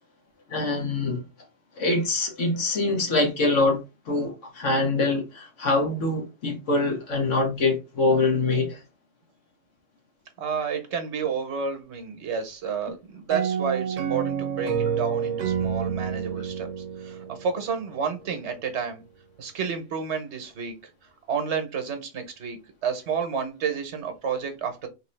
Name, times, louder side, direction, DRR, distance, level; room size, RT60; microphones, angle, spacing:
voice 1, 0.5-1.2 1.8-8.8, left 3 dB, 85° left, 1.6 m, -24 dB
voice 2, 10.4-19.0 19.4-20.8 21.3-24.9, right 6 dB, 65° right, 1.1 m, -30 dB
sound 1, 13.3-17.9, right 7 dB, 90° right, 1.0 m, -28 dB
3.5 x 2.8 x 3.1 m
omnidirectional pair, 1.3 m